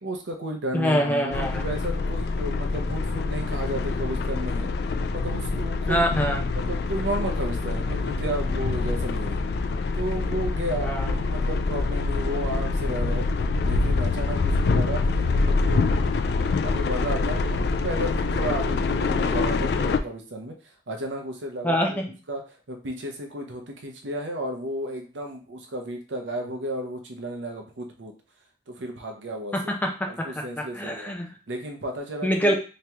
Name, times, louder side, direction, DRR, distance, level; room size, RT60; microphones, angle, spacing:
voice 1, 0.0-4.7 5.1-6.1 6.5-9.4 9.9-13.3 13.6-16.2 16.6-20.6 20.9-22.0 22.3-28.1 28.7-29.5 30.1-31.1 31.5-32.5, right 1 dB, 90° right, 3 dB, 0.7 m, -33 dB
voice 2, 0.7-1.6 5.9-6.6 10.8-11.2 21.6-22.1 29.5-31.3 32.2-32.5, equal, 10° left, 1 dB, 0.6 m, -25 dB
sound 1, 1.3-20.0, left 3 dB, 60° left, 0.3 m, -25 dB
3.4 x 3.0 x 2.9 m, 0.36 s
head